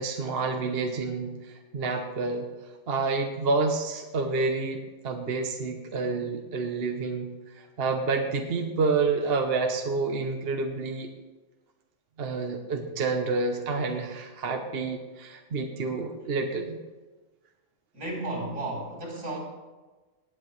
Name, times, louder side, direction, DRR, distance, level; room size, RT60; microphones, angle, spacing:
voice 1, 0.0-2.5 2.9-11.1 12.2-16.8, right 4 dB, 50° right, 4 dB, 1.0 m, -29 dB
voice 2, 17.9-19.4, right 2 dB, 65° right, -3 dB, 4.1 m, -33 dB
18.0 x 9.5 x 3.2 m, 1.2 s
omnidirectional pair, 1.5 m